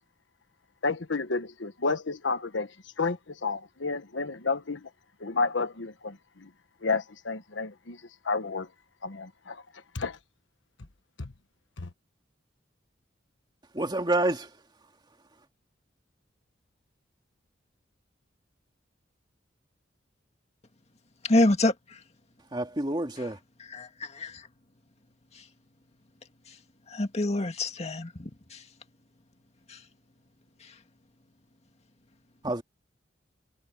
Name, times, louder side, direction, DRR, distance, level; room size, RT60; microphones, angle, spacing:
voice 1, 0.8-2.7 3.0-4.9 5.2-6.5 6.8-8.0 8.2-8.7 9.0-9.6 9.9-10.2 11.2-11.3 11.8-11.9, left 4 dB, 80° left, 1.2 m, -31 dB
voice 2, 13.7-14.5 22.5-23.4 32.4-32.6, right 2 dB, 25° right, 2.3 m, -28 dB
voice 3, 21.2-22.0 23.7-24.5 26.9-28.6 29.7-29.8, left 2 dB, 35° left, 2.0 m, -27 dB
head